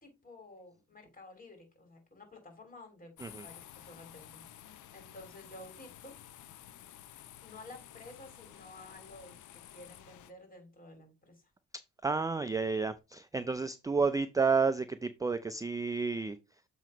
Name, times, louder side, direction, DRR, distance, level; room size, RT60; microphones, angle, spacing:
voice 1, 0.0-3.1 3.4-6.1 7.4-11.5, left 2 dB, 30° left, 3.2 m, -52 dB
sound 1, 3.2-10.3, left 11 dB, 75° left, 0.7 m, -52 dB
voice 2, 12.0-16.4, right 4 dB, 10° right, 0.4 m, -31 dB
7.4 x 3.0 x 5.0 m
cardioid pair, 90°, 30 cm